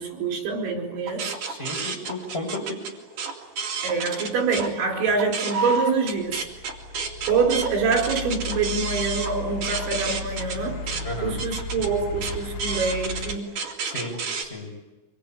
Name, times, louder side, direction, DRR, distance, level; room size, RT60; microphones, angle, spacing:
voice 1, 0.0-1.3 3.8-6.5 7.2-13.5, right 4 dB, 85° right, 0 dB, 6.9 m, -25 dB
sound 1, 1.1-4.7 5.1-14.4, right 4 dB, 50° right, 3.7 m, -31 dB
voice 2, 1.5-2.8 11.0-11.4 13.8-14.7, left 1 dB, 10° left, -1 dB, 6.5 m, -33 dB
sound 2, 6.1-13.4, left 3 dB, 85° left, 3.6 m, -35 dB
25.5 x 23.0 x 8.6 m, 1.1 s
omnidirectional pair, 5.2 m